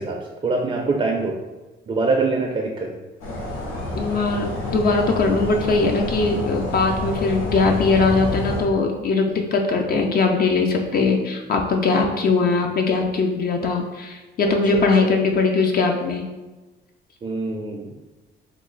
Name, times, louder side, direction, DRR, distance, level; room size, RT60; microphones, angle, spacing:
voice 1, 0.0-1.3 1.9-2.9 14.4-15.1 17.2-17.9, right 3 dB, 25° right, 1 dB, 0.4 m, -24 dB
sound 1, 3.2-8.6, left 1 dB, 80° left, 1.0 m, -29 dB
voice 2, 3.9-16.2, left 3 dB, 50° left, 3 dB, 0.5 m, -20 dB
3.0 x 2.2 x 3.8 m, 1.2 s
cardioid pair, 90°, 20 cm